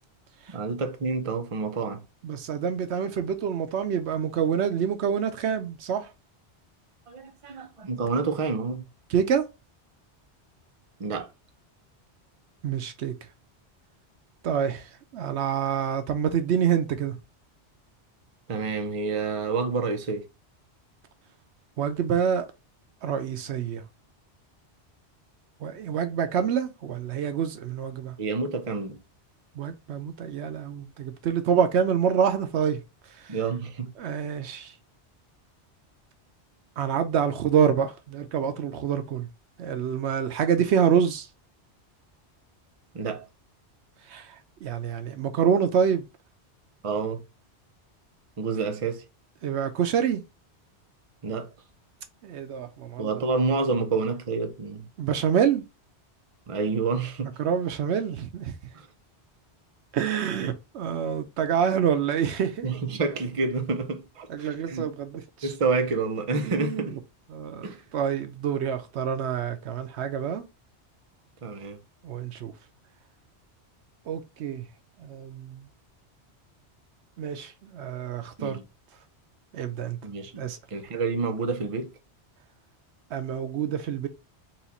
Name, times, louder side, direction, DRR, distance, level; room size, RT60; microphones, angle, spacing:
voice 1, 0.5-2.0 7.1-8.8 11.0-11.3 18.5-20.2 28.2-29.0 33.3-33.9 42.9-43.2 46.8-47.2 48.4-49.0 51.2-51.5 53.0-54.9 56.5-57.3 58.7-58.9 60.4-60.5 62.6-64.9 65.4-66.9 67.6-67.8 71.4-71.8 78.4-78.6 80.0-80.4 80.7-81.9, right 4 dB, 35° right, 0.6 m, -28 dB
voice 2, 2.2-6.1 9.1-9.5 12.6-13.1 14.4-17.2 21.8-22.5 23.0-23.8 25.6-28.2 29.5-32.8 33.1-33.4 34.0-34.7 36.8-39.3 39.6-41.3 44.1-46.1 49.4-50.2 52.2-53.2 55.0-55.6 57.4-58.6 59.9-62.7 64.3-65.5 66.4-67.0 67.3-70.4 72.0-72.5 74.1-74.6 75.0-75.7 77.2-78.6 79.5-80.0 80.4-80.6 83.1-84.1, right 8 dB, 75° right, 0.9 m, -27 dB
4.3 x 2.4 x 4.0 m
omnidirectional pair, 1.2 m